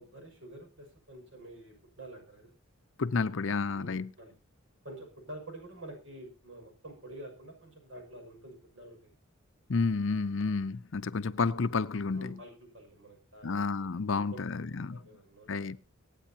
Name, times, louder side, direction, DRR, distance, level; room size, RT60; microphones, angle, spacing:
voice 1, 0.0-2.5 3.7-4.3 4.8-9.1 12.1-14.4 14.9-15.8, right 1 dB, 65° right, 6.1 m, -48 dB
voice 2, 3.0-4.1 9.7-12.4 13.4-15.0 15.5-15.8, left 4 dB, 60° left, 0.6 m, -30 dB
25.0 x 9.1 x 2.9 m
head